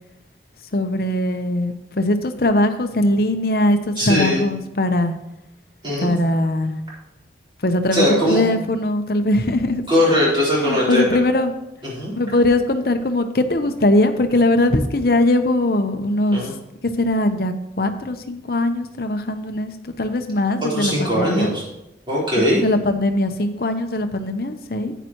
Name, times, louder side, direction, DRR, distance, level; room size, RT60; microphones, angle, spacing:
voice 1, 0.7-5.1 6.0-6.8 7.6-9.8 10.6-11.5 12.1-16.4 17.0-21.5 22.4-24.9, left 1 dB, 55° left, 7 dB, 0.8 m, -20 dB
voice 2, 4.0-4.4 5.8-6.1 7.9-8.4 9.9-11.2 11.8-12.1 16.3-16.5 20.6-21.6 22.1-22.6, equal, 25° right, -7 dB, 4.1 m, -20 dB
10.5 x 9.1 x 3.0 m, 0.90 s
head